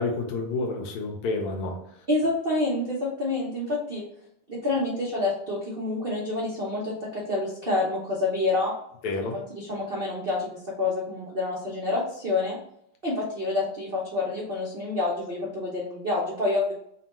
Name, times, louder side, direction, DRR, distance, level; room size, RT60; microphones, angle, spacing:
voice 1, 0.0-1.8 9.0-9.4, left 3 dB, 85° left, 2 dB, 1.7 m, -29 dB
voice 2, 2.1-4.0 4.6-8.7 9.2-12.6 13.0-16.7, left 2 dB, 85° right, -5 dB, 0.5 m, -28 dB
4.1 x 2.2 x 4.2 m, 0.73 s
omnidirectional pair, 2.4 m